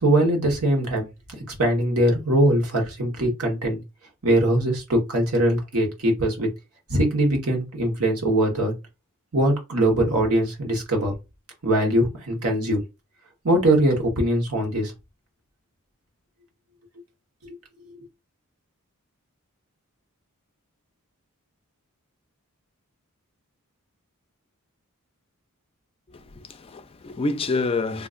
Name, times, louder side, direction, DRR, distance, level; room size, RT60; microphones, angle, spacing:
voice 1, 0.0-1.1 1.6-3.8 4.2-6.5 6.9-8.7 9.3-11.1 11.6-12.8 13.4-14.9, right 1 dB, 75° right, 1.2 m, -21 dB
voice 2, 26.1-28.1, left 3 dB, 25° left, 0.4 m, -28 dB
3.7 x 2.5 x 2.5 m
head